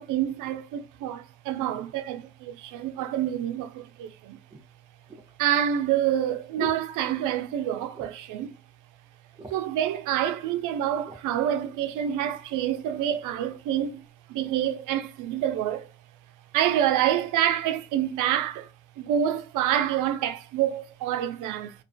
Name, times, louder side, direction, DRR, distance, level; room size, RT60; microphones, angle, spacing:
voice 1, 0.0-4.4 5.4-8.5 9.5-14.0 14.3-15.9 16.5-18.7 19.0-21.7, right 10 dB, 85° right, 0.4 m, -27 dB
sound 1, 4.5-7.6 7.9-8.4 8.7-8.8 9.1-9.8 10.5-11.3 11.9-12.1, right 3 dB, 15° right, 0.5 m, -42 dB
2.4 x 2.2 x 2.4 m
cardioid pair, 90°, 30 cm